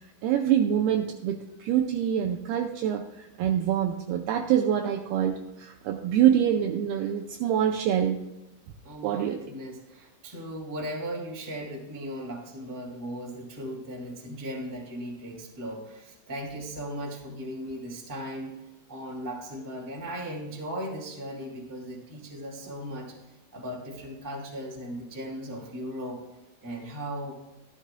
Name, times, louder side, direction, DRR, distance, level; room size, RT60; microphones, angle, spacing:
voice 1, 0.2-8.2 9.0-9.4, right 10 dB, 80° right, 3 dB, 2.2 m, -25 dB
voice 2, 8.8-18.6 18.9-26.2 26.6-27.3, equal, 10° right, -2 dB, 0.8 m, -37 dB
14.5 x 13.0 x 2.2 m, 1.0 s
omnidirectional pair, 5.1 m